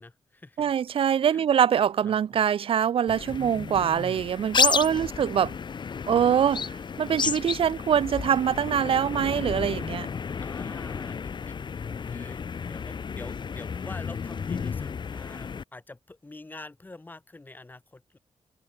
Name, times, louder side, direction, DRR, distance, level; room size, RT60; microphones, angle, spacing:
voice 1, 0.0-0.7 1.3-1.6 2.0-2.4 4.8-5.2 10.4-18.2, left 2 dB, 20° left, 5.9 m, -47 dB
voice 2, 0.6-5.5 6.1-10.1, right 8 dB, 60° right, 0.5 m, -24 dB
sound 1, 3.1-15.6, left 6 dB, 50° left, 2.4 m, -32 dB
wide cardioid pair, 170°, 10 cm